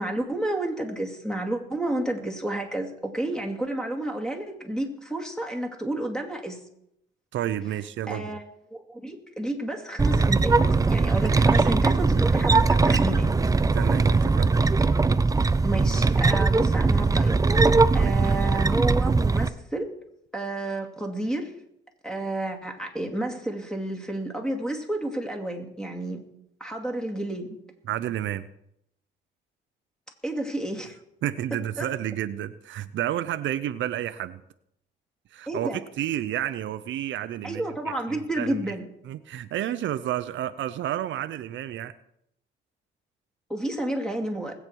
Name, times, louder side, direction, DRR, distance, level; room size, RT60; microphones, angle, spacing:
voice 1, 0.0-6.6 8.1-8.4 8.7-10.6 10.9-13.3 15.6-17.5 17.9-19.9 20.3-21.5 22.0-26.2 26.6-27.6 30.2-30.9 31.8-31.9 35.5-35.8 37.4-38.9 43.5-44.5, right 1 dB, 5° left, 3 dB, 2.4 m, -30 dB
voice 2, 7.3-8.4 11.2-11.7 13.7-14.6 18.0-18.1 27.8-28.5 31.2-34.4 35.3-37.6 38.1-38.7 39.0-41.9, right 11 dB, 70° right, 12 dB, 0.6 m, -31 dB
sound 1, 10.0-19.5, right 3 dB, 15° right, 0.5 m, -20 dB
20.5 x 8.3 x 4.6 m, 0.77 s
cardioid pair, 90°, 20 cm